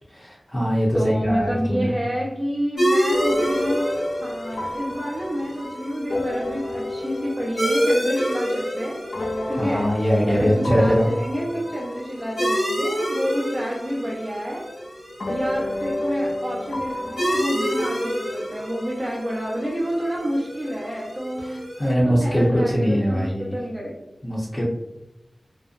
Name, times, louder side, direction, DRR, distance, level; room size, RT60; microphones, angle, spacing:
voice 1, 0.1-1.9 9.6-11.1 21.4-23.6 24.2-24.6, equal, 30° left, -8 dB, 0.6 m, -22 dB
voice 2, 0.9-9.1 9.5-14.7 15.3-24.0, equal, 30° right, -4 dB, 0.6 m, -29 dB
sound 1, 2.8-21.9, equal, 90° left, 1.3 m, -28 dB
sound 2, 3.1-13.9 15.2-19.7, left 1 dB, 70° left, 0.3 m, -32 dB
2.6 x 2.0 x 2.3 m, 0.90 s
wide cardioid pair, 55°, 0 cm